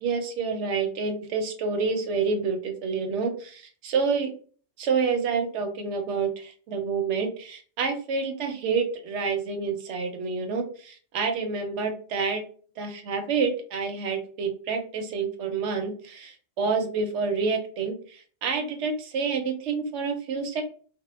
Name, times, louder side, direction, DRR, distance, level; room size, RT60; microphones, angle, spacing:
voice 1, 0.0-4.3 4.8-12.4 12.8-20.6, right 5 dB, 85° right, 4 dB, 0.9 m, -28 dB
2.1 x 2.0 x 3.0 m, 0.43 s
omnidirectional pair, 1.2 m